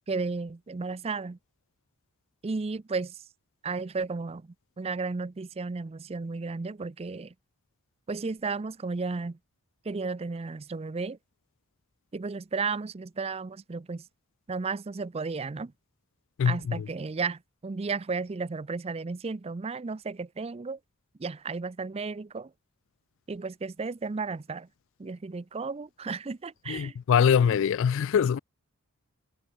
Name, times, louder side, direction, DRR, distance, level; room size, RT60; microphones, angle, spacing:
voice 1, 0.1-1.4 2.4-3.2 3.6-7.3 8.1-9.4 9.8-11.2 12.1-14.1 14.5-15.7 16.5-20.8 21.2-22.5 23.3-24.7 25.0-27.0 27.4-27.6, right 4 dB, 25° right, 0.4 m, -33 dB
voice 2, 26.7-28.4, left 7 dB, 55° left, 0.3 m, -23 dB
head